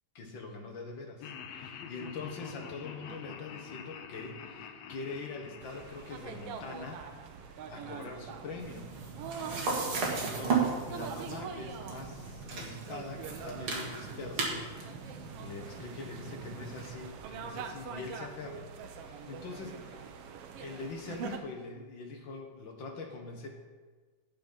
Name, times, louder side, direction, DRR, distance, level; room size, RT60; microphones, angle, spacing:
voice 1, 0.1-7.0 7.4-8.9 9.7-15.0 15.3-18.7 19.0-20.1 20.6-23.5, left 3 dB, 50° left, 2 dB, 1.7 m, -43 dB
Laughter, 1.2-7.4, left 7 dB, 70° left, 1.8 m, -47 dB
sound 1, 5.6-21.4, right 6 dB, 70° right, 1.5 m, -44 dB
sound 2, 8.6-16.9, right 4 dB, 50° right, 2.5 m, -36 dB
9.3 x 8.9 x 5.6 m, 1.4 s
omnidirectional pair, 3.3 m